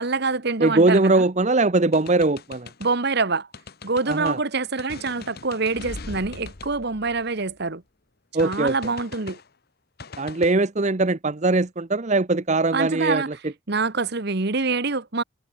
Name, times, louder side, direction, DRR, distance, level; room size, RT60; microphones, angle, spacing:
voice 1, 0.0-1.2 2.8-3.5 3.8-7.8 8.4-9.4 12.7-13.3 13.7-15.2, right 4 dB, 50° right, 1.3 m, -25 dB
voice 2, 0.6-2.7 4.1-4.4 8.3-8.7 10.2-13.4, right 2 dB, 35° right, 0.8 m, -21 dB
sound 1, 1.9-2.9 3.5-4.4 4.8-7.7 8.4-9.5 10.0-10.5, left 3 dB, 50° left, 1.2 m, -40 dB
head